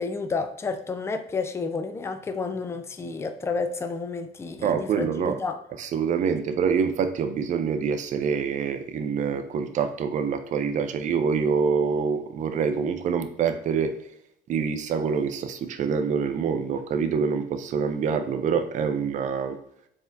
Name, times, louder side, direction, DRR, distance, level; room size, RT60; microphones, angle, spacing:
voice 1, 0.0-5.6, left 4 dB, 15° left, 8 dB, 0.4 m, -30 dB
voice 2, 4.6-5.4 5.8-13.9 14.5-19.6, right 6 dB, 45° right, 8 dB, 0.5 m, -26 dB
4.1 x 3.5 x 2.6 m, 0.77 s
cardioid pair, 110°, 17 cm